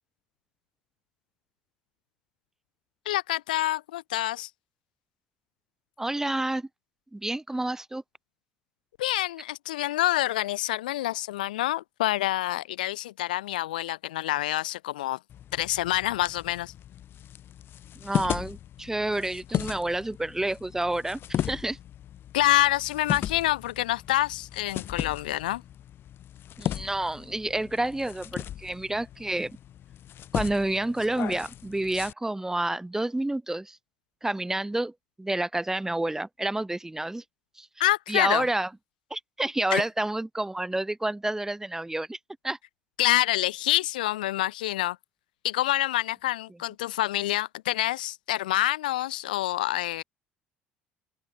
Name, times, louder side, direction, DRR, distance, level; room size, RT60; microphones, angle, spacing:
voice 1, 3.0-4.5 9.0-15.2 15.5-16.7 22.3-25.6 37.8-38.5 39.7-39.8 43.0-45.0 45.4-50.0, left 16 dB, 90° left, 1.1 m, -27 dB
voice 2, 6.0-6.7 7.1-8.0 17.9-21.8 26.6-29.6 30.3-33.8 34.2-37.2 37.6-38.7 39.1-42.2 42.4-42.6, right 1 dB, 10° right, 2.9 m, -29 dB
sound 1, 15.3-32.1, left 11 dB, 55° left, 4.1 m, -36 dB
hypercardioid pair, 70°, 4 cm